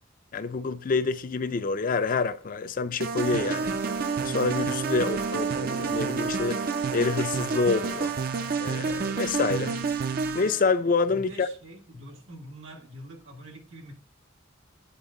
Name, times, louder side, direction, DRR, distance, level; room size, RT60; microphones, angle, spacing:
voice 1, 0.3-3.7 4.2-6.6 6.9-8.1 8.6-9.8 10.3-11.5, left 4 dB, 45° left, 0.4 m, -27 dB
sound 1, 3.0-10.6, right 5 dB, 45° right, 0.5 m, -29 dB
voice 2, 11.1-13.9, equal, 85° right, 1.7 m, -45 dB
8.8 x 4.3 x 3.8 m
head